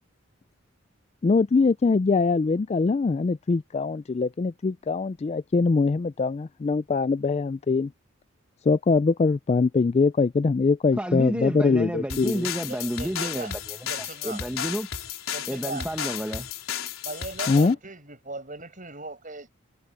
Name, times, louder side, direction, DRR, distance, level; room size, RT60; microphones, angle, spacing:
voice 1, 1.2-7.9 8.7-12.5 17.5-17.8, left 4 dB, 30° left, 0.3 m, -23 dB
voice 2, 11.0-13.9 14.2-14.9 15.5-16.5, equal, 5° right, 1.0 m, -30 dB
sound 1, 12.1-17.7, left 9 dB, 85° left, 3.9 m, -34 dB
voice 3, 12.7-13.5 13.8-14.4 15.3-15.9 17.0-19.5, right 3 dB, 40° right, 7.9 m, -38 dB
head